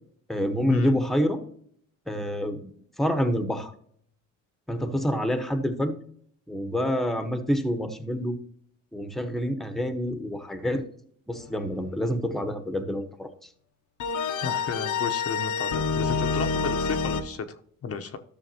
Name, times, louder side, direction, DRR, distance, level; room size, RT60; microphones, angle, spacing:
voice 1, 0.3-1.4 2.1-3.7 4.7-6.0 6.5-8.4 8.9-10.8 11.3-13.5, equal, ahead, 8 dB, 1.1 m, -27 dB
sound 1, 14.0-17.2, left 5 dB, 75° left, 1.0 m, -27 dB
voice 2, 14.4-18.2, left 6 dB, 50° left, 6 dB, 0.9 m, -33 dB
13.0 x 6.5 x 2.9 m, 0.64 s
cardioid pair, 90°, 30 cm